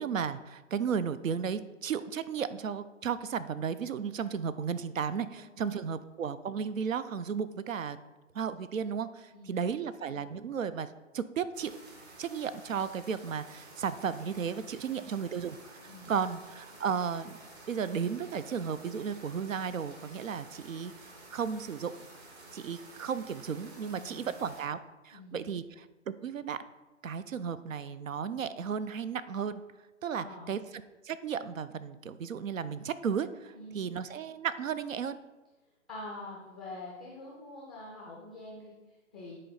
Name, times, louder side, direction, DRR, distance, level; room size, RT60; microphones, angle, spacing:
voice 1, 0.0-8.0 8.3-11.7 12.2-15.6 16.1-17.4 17.7-20.9 21.3-21.9 22.5-24.8 25.0-26.6 27.0-29.6 30.0-30.6 31.0-35.2, right 7 dB, 75° right, 14 dB, 0.6 m, -34 dB
voice 2, 5.3-5.7 9.3-9.6 14.8-15.2 15.9-16.1 24.0-24.3 25.1-25.5 30.1-30.6 33.5-34.0 35.9-39.4, left 2 dB, ahead, -4 dB, 0.4 m, -46 dB
sound 1, 11.5-24.6, right 2 dB, 55° right, 2.4 m, -52 dB
9.9 x 4.4 x 3.9 m, 1.1 s
figure-of-eight pair, 135°, 40 cm